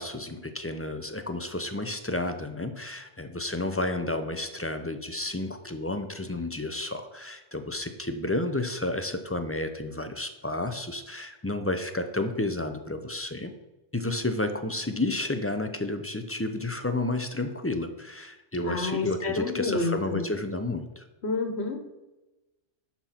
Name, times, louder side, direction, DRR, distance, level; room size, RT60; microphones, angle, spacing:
voice 1, 0.0-13.5 13.9-21.0, left 2 dB, 20° left, 8 dB, 0.4 m, -31 dB
voice 2, 18.6-20.2 21.2-21.8, left 3 dB, 60° left, 5 dB, 1.5 m, -29 dB
11.5 x 4.4 x 5.8 m, 1.1 s
omnidirectional pair, 1.2 m